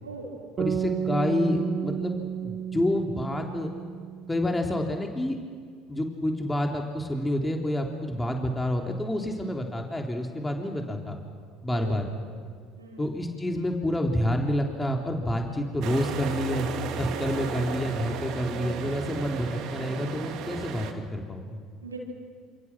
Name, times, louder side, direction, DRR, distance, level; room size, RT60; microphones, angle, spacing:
voice 1, 0.0-0.4 11.7-12.4 12.8-13.1 21.8-22.0, right 3 dB, 90° right, -1 dB, 5.1 m, -41 dB
voice 2, 0.6-3.7 4.3-5.4 5.9-11.2 11.6-12.1 13.0-16.7 16.9-21.6, left 1 dB, 15° left, 2 dB, 3.4 m, -28 dB
sound 1, 0.6-4.8, right 9 dB, 40° right, 0.6 m, -32 dB
sound 2, 15.8-20.9, right 6 dB, 60° right, 2.7 m, -34 dB
29.0 x 27.5 x 6.2 m, 2.1 s
figure-of-eight pair, 60°, 0 cm